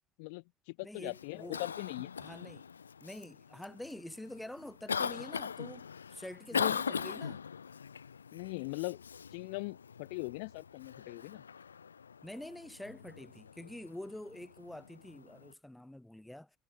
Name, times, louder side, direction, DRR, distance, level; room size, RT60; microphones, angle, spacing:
voice 1, 0.2-2.1 6.5-6.8 8.3-9.0 9.3-11.4, left 29 dB, 60° left, 0.5 m, -40 dB
voice 2, 0.8-1.7 2.2-2.7 3.0-7.4 12.2-16.6, left 1 dB, 5° left, 2.0 m, -47 dB
Cough, 1.0-15.5, left 6 dB, 80° left, 0.8 m, -41 dB
figure-of-eight pair, 60°, 0 cm